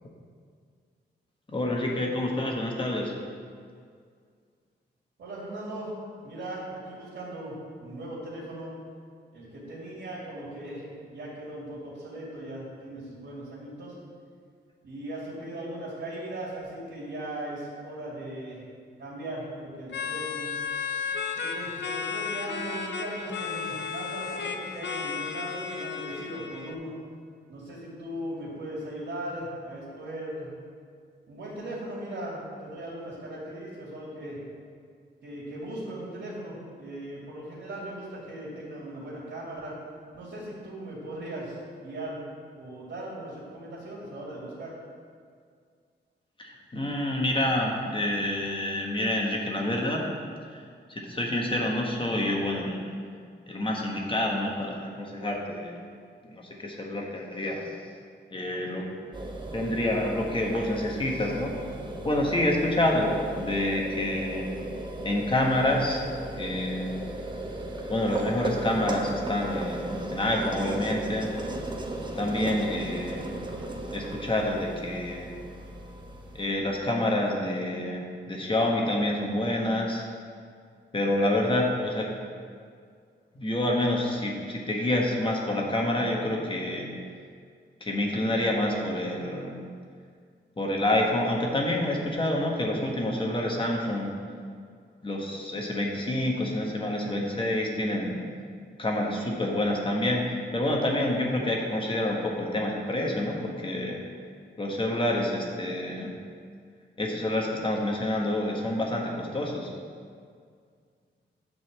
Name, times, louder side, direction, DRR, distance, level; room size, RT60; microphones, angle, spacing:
voice 1, 1.5-3.1 46.4-50.0 50.9-52.8 53.5-55.8 56.2-57.7 58.3-58.9 59.5-61.5 62.0-64.5 65.0-66.0 66.4-67.0 67.9-71.3 72.2-73.3 73.9-75.3 76.3-80.0 80.9-82.1 83.3-86.9 87.8-89.5 90.6-94.1 95.0-98.2 98.8-104.0 104.6-106.1 107.0-109.7, left 1 dB, 25° left, -1 dB, 1.4 m, -28 dB
voice 2, 5.2-5.9 6.2-7.5 7.8-8.7 9.3-13.9 14.8-18.6 19.0-20.5 21.3-26.9 27.5-30.5 31.3-34.4 35.2-39.7 40.1-41.6 41.8-42.2 42.5-44.7, right 1 dB, 80° right, -7 dB, 2.5 m, -38 dB
sound 1, 19.9-26.7, left 6 dB, 70° left, 0.6 m, -33 dB
sound 2, 59.1-76.5, right 1 dB, 25° right, 1.0 m, -36 dB
9.6 x 4.1 x 7.4 m, 2.1 s
wide cardioid pair, 100°, 19 cm